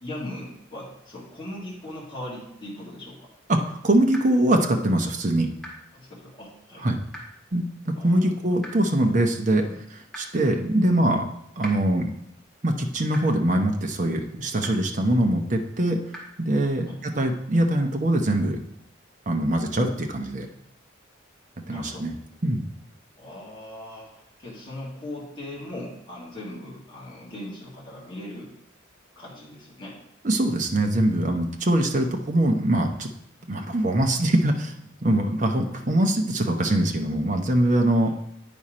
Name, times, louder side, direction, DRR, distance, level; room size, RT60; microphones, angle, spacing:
voice 1, 0.0-3.3 5.9-6.9 8.0-8.3 9.6-9.8 10.8-11.0 16.9-17.0 21.7-22.1 23.2-28.5 29.2-30.0 33.5-33.7 38.0-38.2, left 1 dB, 25° left, -5 dB, 1.7 m, -39 dB
voice 2, 3.5-5.5 6.8-7.0 7.5-9.6 10.2-11.2 11.6-12.1 12.6-16.0 16.4-18.6 19.3-20.5 21.7-22.2 22.4-22.7 30.2-33.1 33.5-34.7 35.0-38.1, right 1 dB, 40° right, 3 dB, 0.8 m, -23 dB
sound 1, 4.1-4.2 5.6-5.7 7.1-7.2 8.6-8.7 10.1-10.2 11.6-11.7 13.1-13.2 14.6-14.7 16.1-16.2, equal, ahead, 1.7 m, -38 dB
9.1 x 4.2 x 5.0 m, 0.80 s
head